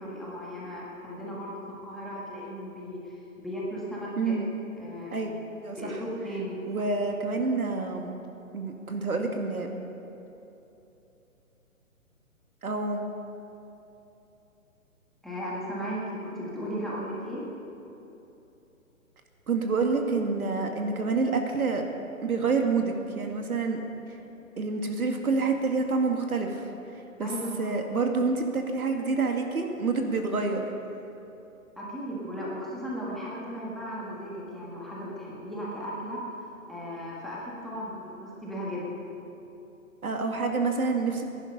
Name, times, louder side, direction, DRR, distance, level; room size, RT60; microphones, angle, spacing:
voice 1, 0.0-4.4 4.8-5.3 5.8-6.8 15.2-17.5 27.2-27.8 31.8-36.3 36.7-39.0, equal, ahead, -7 dB, 1.6 m, -36 dB
voice 2, 4.2-4.5 5.1-5.3 5.6-5.9 6.7-8.1 8.5-9.7 12.6-13.1 19.5-21.8 22.2-23.8 24.6-26.7 27.2-27.3 27.6-30.7 40.0-41.2, right 4 dB, 75° right, 3 dB, 2.1 m, -27 dB
19.0 x 11.0 x 5.5 m, 3.0 s
figure-of-eight pair, 140°, 43 cm